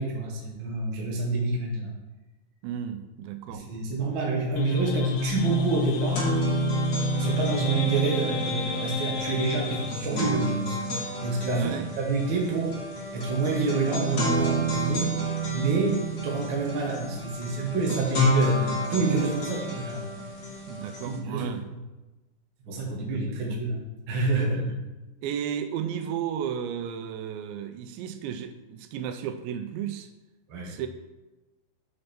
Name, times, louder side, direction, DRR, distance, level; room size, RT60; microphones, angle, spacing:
voice 1, 0.0-1.9 3.5-6.3 7.2-10.8 11.2-12.8 13.1-15.1 15.5-20.0 21.0-21.6 22.6-24.7 30.5-30.7, right 3 dB, 60° right, -2 dB, 1.2 m, -28 dB
voice 2, 2.6-3.7 11.5-11.9 20.7-21.7 23.1-23.6 24.5-24.6 25.2-30.1 30.6-30.9, right 8 dB, 90° right, 9 dB, 2.9 m, -34 dB
sound 1, 4.6-10.0, left 5 dB, 80° left, 2.1 m, -30 dB
sound 2, 5.2-5.3 5.6-21.2, right 1 dB, 45° left, 1.4 m, -30 dB
6.9 x 6.4 x 4.4 m, 1.1 s
omnidirectional pair, 5.0 m